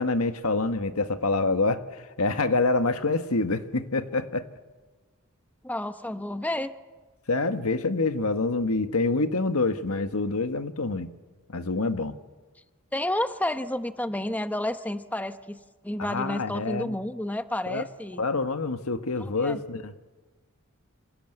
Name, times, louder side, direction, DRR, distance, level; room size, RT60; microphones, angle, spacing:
voice 1, 0.0-4.5 7.3-11.1 11.5-12.1 16.0-17.0 17.7-17.8 18.2-19.9, left 3 dB, 80° left, 9 dB, 1.5 m, -26 dB
voice 2, 5.6-6.7 12.9-15.6 15.8-18.2 19.2-19.6, left 1 dB, 5° left, 10 dB, 0.8 m, -30 dB
28.0 x 26.0 x 8.0 m, 1.3 s
head